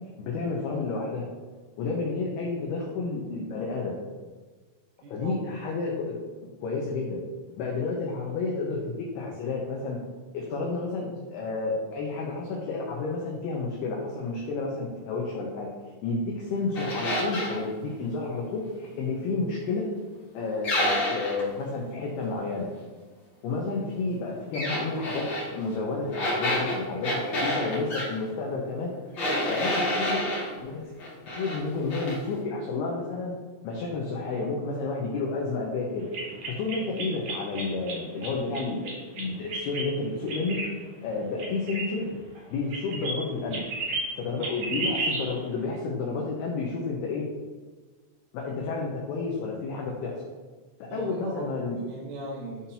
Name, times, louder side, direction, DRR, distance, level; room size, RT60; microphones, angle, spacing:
voice 1, 0.2-1.3 1.8-4.0 5.1-6.2 6.6-7.2 7.6-10.0 10.3-15.7 16.0-19.9 20.3-22.7 23.4-28.9 29.5-30.4 30.6-30.9 31.4-33.3 33.6-36.1 36.5-40.6 41.0-42.1 42.5-43.6 44.2-47.3 48.3-50.3 50.8-51.8, left 3 dB, 80° left, -2 dB, 2.3 m, -31 dB
voice 2, 5.0-5.3 44.3-44.6 50.9-52.7, right 1 dB, 80° right, -6 dB, 4.1 m, -39 dB
sound 1, 16.7-17.6 20.6-21.5 24.5-25.5 26.1-28.1 29.2-30.5 31.0-31.6 31.9-32.2, left 1 dB, 50° left, 1.4 m, -28 dB
sound 2, 36.1-38.0 38.2-39.9 40.3-40.7 41.4-42.4 42.7-43.1 43.4-44.1 44.4-45.3, right 3 dB, 60° right, 2.3 m, -32 dB
11.5 x 5.7 x 2.8 m, 1.3 s
omnidirectional pair, 5.9 m